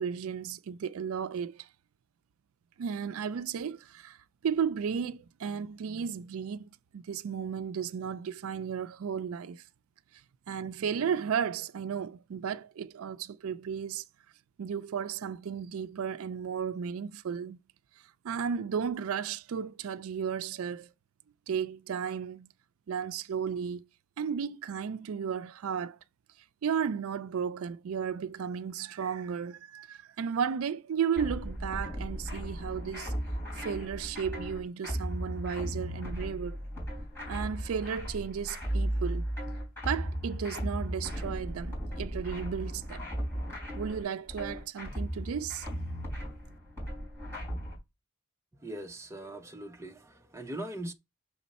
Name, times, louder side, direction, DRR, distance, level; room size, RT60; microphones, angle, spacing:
voice 1, 0.0-1.7 2.8-4.2 4.4-9.6 10.5-14.0 14.6-17.6 18.2-20.9 21.5-22.5 22.9-23.9 24.2-26.0 26.6-33.1 33.6-36.6 37.3-39.2 39.8-43.1 43.7-45.7, right 7 dB, 80° right, 0.4 m, -34 dB
sound 1, 31.2-47.8, equal, 10° left, 3.5 m, -36 dB
voice 2, 48.5-50.9, right 1 dB, 15° right, 0.6 m, -41 dB
6.2 x 4.2 x 4.1 m
head